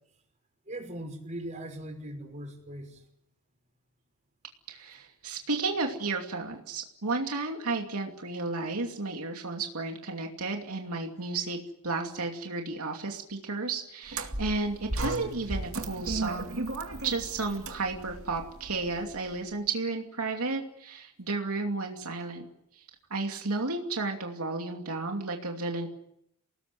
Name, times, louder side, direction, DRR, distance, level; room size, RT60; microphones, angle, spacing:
voice 1, 0.7-3.0 12.1-12.2 21.2-21.3, right 1 dB, 35° right, 3 dB, 5.8 m, -40 dB
voice 2, 4.7-16.6 17.0-22.5 22.7-22.8 23.1-25.9, right 3 dB, 90° right, 2 dB, 2.7 m, -33 dB
sound 1, 14.1-19.3, right 2 dB, 65° right, 2.5 m, -35 dB
28.5 x 19.0 x 7.8 m, 0.78 s
head